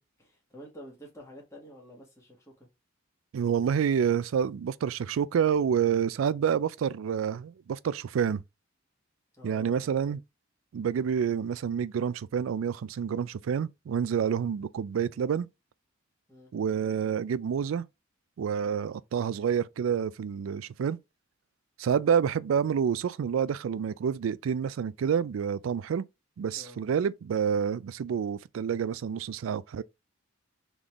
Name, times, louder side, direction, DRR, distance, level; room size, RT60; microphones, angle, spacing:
voice 1, 0.2-2.7 9.4-9.8 14.2-14.3 16.3-16.5 18.6-18.8 21.8-22.0 26.5-26.8, left 1 dB, 15° left, 1.5 m, -49 dB
voice 2, 3.3-8.4 9.4-10.2 10.7-15.5 16.5-17.8 18.4-21.0 21.8-26.0 26.4-29.8, right 7 dB, 80° right, 0.3 m, -28 dB
3.9 x 3.6 x 3.0 m
head